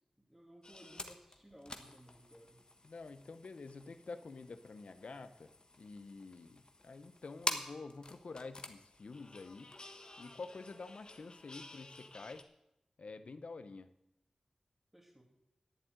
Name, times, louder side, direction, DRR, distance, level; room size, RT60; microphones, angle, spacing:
voice 1, 0.2-2.6 14.9-15.2, equal, 5° right, 0 dB, 2.6 m, -58 dB
sound 1, 0.6-12.4, left 2 dB, 45° left, 1.3 m, -47 dB
voice 2, 2.8-9.7 10.2-12.5 13.0-13.9, left 3 dB, 80° left, 11 dB, 0.8 m, -48 dB
10.5 x 7.5 x 9.3 m, 0.85 s
wide cardioid pair, 75°, 2 cm